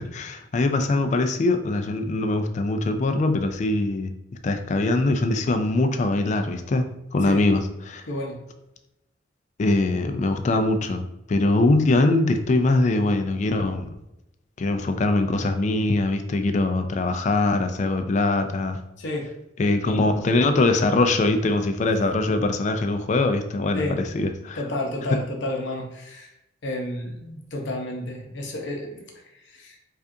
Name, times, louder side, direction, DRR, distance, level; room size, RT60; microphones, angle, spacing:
voice 1, 0.0-4.1 4.4-8.0 9.6-11.0 11.3-13.9 14.6-18.8 19.6-24.6, left 2 dB, 40° left, 7 dB, 0.3 m, -22 dB
voice 2, 8.1-8.4 19.0-19.3 22.3-22.4 23.7-24.0 24.6-26.3 26.6-29.1 29.3-29.8, left 1 dB, 65° left, 1 dB, 0.7 m, -31 dB
4.9 x 2.4 x 2.6 m, 0.87 s
head